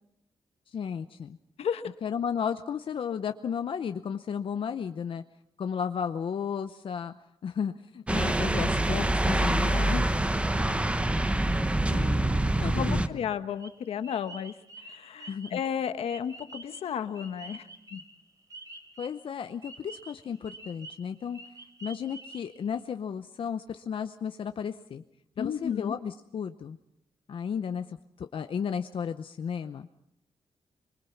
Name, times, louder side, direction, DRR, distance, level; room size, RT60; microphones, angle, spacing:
voice 1, 0.7-1.4 2.0-5.2 5.6-7.1 7.4-10.1 11.9-13.2 15.3-15.6 19.0-21.4 21.8-25.0 25.4-26.8 27.3-29.9, left 7 dB, 60° left, 8 dB, 0.8 m, -34 dB
voice 2, 1.6-1.9 12.7-18.0 25.4-26.0, left 8 dB, 85° left, 10 dB, 1.2 m, -33 dB
sound 1, 8.1-13.1, right 1 dB, 10° right, 0.9 m, -25 dB
sound 2, 13.6-19.2 19.6-22.8, right 2 dB, 35° right, 3.2 m, -47 dB
24.5 x 23.0 x 5.9 m, 0.83 s
cardioid pair, 100°, 10 cm